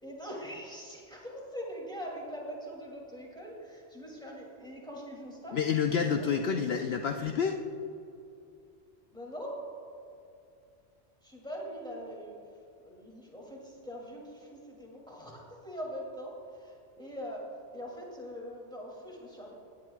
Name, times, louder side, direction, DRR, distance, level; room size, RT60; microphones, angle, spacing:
voice 1, 0.0-5.6 5.9-6.9 9.1-9.6 11.2-12.4 12.8-17.4 17.7-19.5, equal, 5° left, -3 dB, 2.5 m, -42 dB
voice 2, 5.5-7.6, left 6 dB, 65° left, 4 dB, 0.8 m, -28 dB
17.0 x 10.5 x 2.4 m, 2.6 s
omnidirectional pair, 1.2 m